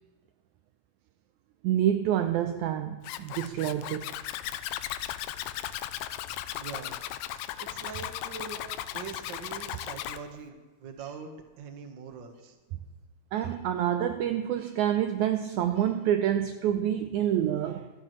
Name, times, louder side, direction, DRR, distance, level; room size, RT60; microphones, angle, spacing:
voice 1, 1.6-4.1 13.3-17.9, right 10 dB, 85° right, 1.7 m, -27 dB
Zipper (clothing), 3.0-10.2, left 12 dB, 80° left, 2.1 m, -36 dB
voice 2, 6.5-7.0 7.6-8.7 8.9-12.6, right 5 dB, 60° right, 1.2 m, -43 dB
25.5 x 9.2 x 3.1 m
omnidirectional pair, 3.9 m